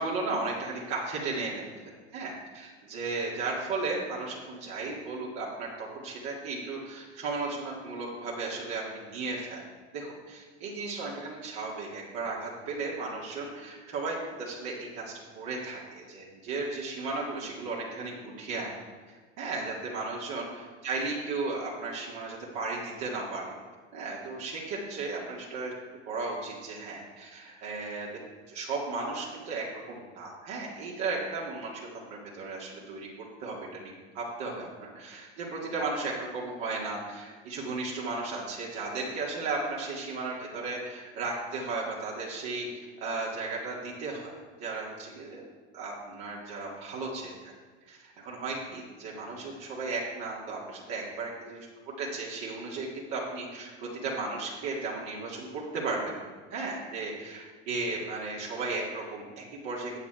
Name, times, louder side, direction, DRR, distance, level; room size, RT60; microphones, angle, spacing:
voice 1, 0.0-9.6 9.9-18.7 19.4-20.5 20.8-23.4 23.9-25.7 26.1-28.1 28.5-31.8 32.1-33.1 33.4-33.6 34.1-42.7 43.0-44.3 44.6-45.4 45.7-47.3 47.9-56.1 56.5-59.9, right 3 dB, 60° right, -4 dB, 2.2 m, -35 dB
9.6 x 7.5 x 4.4 m, 1.5 s
hypercardioid pair, 90°, 36 cm